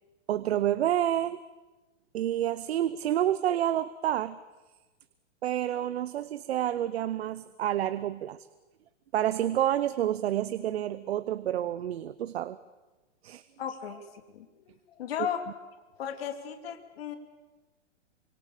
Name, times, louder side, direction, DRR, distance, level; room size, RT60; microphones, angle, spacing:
voice 1, 0.3-1.4 2.1-4.4 5.4-8.4 9.1-12.6 13.2-13.4, right 11 dB, 55° right, 14 dB, 1.0 m, -29 dB
voice 2, 13.6-15.4 16.0-17.2, left 9 dB, 55° left, 6 dB, 3.0 m, -36 dB
27.5 x 25.5 x 6.8 m, 1.2 s
hypercardioid pair, 155°, 37 cm